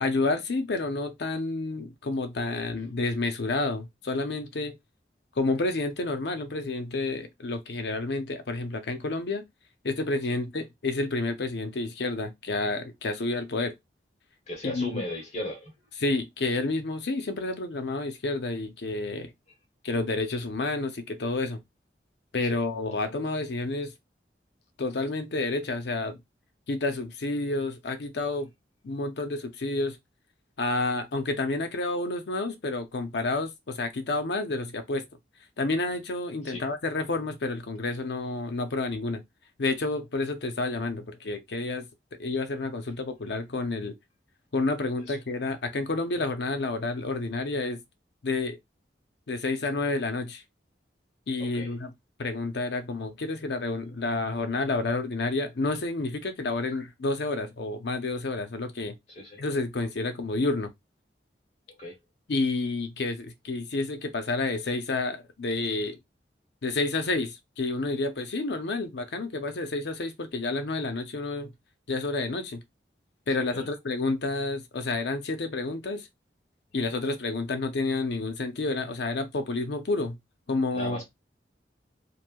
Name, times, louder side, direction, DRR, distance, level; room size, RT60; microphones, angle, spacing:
voice 1, 0.0-4.8 5.4-9.4 9.8-13.7 14.6-15.0 16.0-19.3 19.8-21.6 22.3-23.9 24.8-26.2 26.7-28.5 28.8-30.0 30.6-35.0 35.6-39.2 39.6-41.9 42.2-43.9 44.5-47.8 48.2-48.6 49.3-50.4 51.3-51.9 52.2-59.0 59.4-60.7 62.3-66.0 66.6-71.5 71.9-72.6 73.3-76.1 76.7-80.2 80.5-81.0, left 2 dB, 75° left, 0.6 m, -29 dB
voice 2, 14.5-15.7 22.4-22.6 36.4-36.6 45.1-45.2 51.4-51.7 59.1-59.4 61.8-62.0 73.5-73.7 80.7-81.0, left 1 dB, 40° left, 1.2 m, -36 dB
3.1 x 2.5 x 2.2 m
head